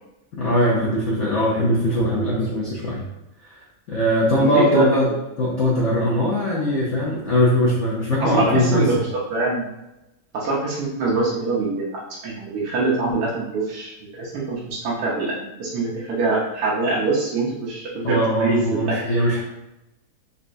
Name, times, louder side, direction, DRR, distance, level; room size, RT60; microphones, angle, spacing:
voice 1, 0.4-3.0 3.4-5.1 5.4-9.0 18.0-19.4, equal, 60° left, -6 dB, 0.8 m, -21 dB
voice 2, 4.4-4.9 8.2-9.7 10.3-11.8 12.2-19.0, right 3 dB, 75° right, -6 dB, 1.2 m, -24 dB
4.0 x 2.3 x 2.5 m, 0.94 s
omnidirectional pair, 1.7 m